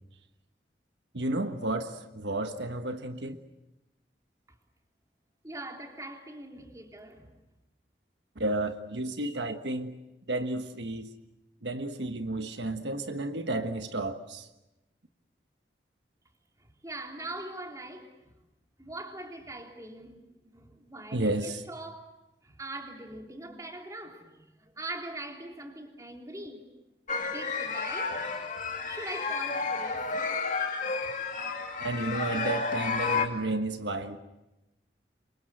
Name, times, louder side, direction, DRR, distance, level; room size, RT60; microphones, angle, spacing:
voice 1, 1.1-3.4 8.3-9.9 10.3-11.1 11.6-14.5 21.1-21.6 31.8-34.2, right 2 dB, 90° right, 1.4 m, -32 dB
voice 2, 5.4-7.3 16.6-18.3 18.8-22.2 22.4-26.7 27.2-28.3 28.8-30.1 31.0-31.1, right 1 dB, 20° right, 3.3 m, -42 dB
sound 1, 27.1-33.3, left 4 dB, 45° left, 2.7 m, -31 dB
28.5 x 24.0 x 7.9 m
head